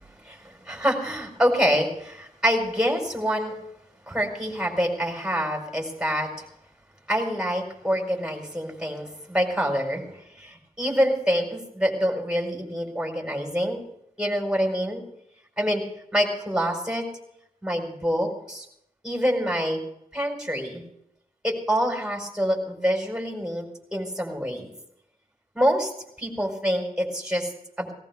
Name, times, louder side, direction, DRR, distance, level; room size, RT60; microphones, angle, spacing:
voice 1, 0.2-3.5 4.1-6.4 7.1-10.0 10.4-13.8 14.2-15.0 15.6-15.8 16.1-17.0 17.6-18.6 19.0-19.8 20.1-20.8 21.4-23.7 23.9-24.7 25.5-25.9 26.2-27.5 27.8-27.9, equal, 5° right, 1 dB, 5.0 m, -26 dB
18.0 x 18.0 x 3.6 m, 0.76 s
wide cardioid pair, 90°, 15 cm